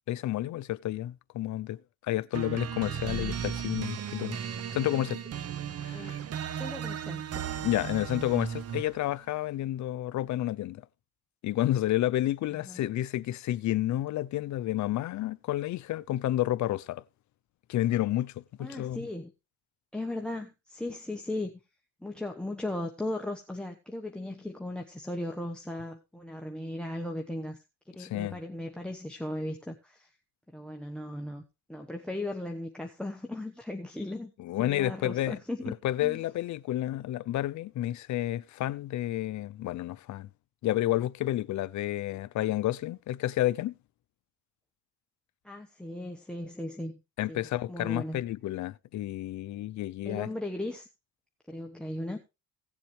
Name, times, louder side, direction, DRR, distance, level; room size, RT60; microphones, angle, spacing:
voice 1, 0.1-4.4 4.7-5.2 5.8-6.2 7.6-10.8 11.4-17.0 17.7-19.1 28.0-28.4 34.4-35.4 35.8-40.3 40.6-43.7 47.2-50.3, left 14 dB, 70° left, 0.6 m, -30 dB
sound 1, 2.3-9.0, right 8 dB, 55° right, 0.9 m, -36 dB
voice 2, 6.5-7.4 12.6-12.8 18.6-19.3 19.9-21.5 22.0-27.6 27.9-30.1 30.5-31.4 31.7-34.3 34.6-35.7 36.0-36.2 45.4-46.9 47.3-48.2 50.0-50.9 51.5-52.2, left 1 dB, 5° left, 1.1 m, -37 dB
17.0 x 7.4 x 3.2 m
cardioid pair, 90°, 30 cm